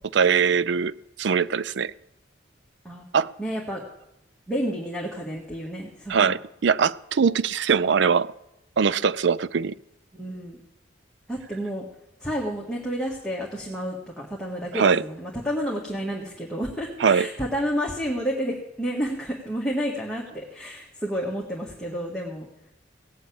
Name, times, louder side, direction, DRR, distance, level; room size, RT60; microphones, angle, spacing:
voice 1, 0.1-1.9 3.1-3.3 6.1-8.3 8.8-9.7 14.7-15.0 17.0-17.3, right 6 dB, 70° right, 0.4 m, -22 dB
voice 2, 3.4-3.8 4.5-6.3 10.1-10.6 11.3-11.9 12.2-22.5, equal, 5° left, 1.9 m, -30 dB
17.5 x 7.1 x 8.6 m
head